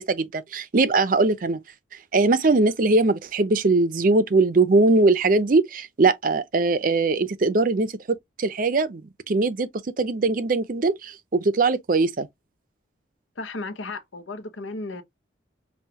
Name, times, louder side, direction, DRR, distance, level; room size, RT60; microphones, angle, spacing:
voice 1, 0.0-1.6 2.1-9.7 10.0-12.3, right 3 dB, 45° right, 0.5 m, -21 dB
voice 2, 13.4-15.0, left 3 dB, 85° left, 0.8 m, -34 dB
5.5 x 2.3 x 2.8 m
head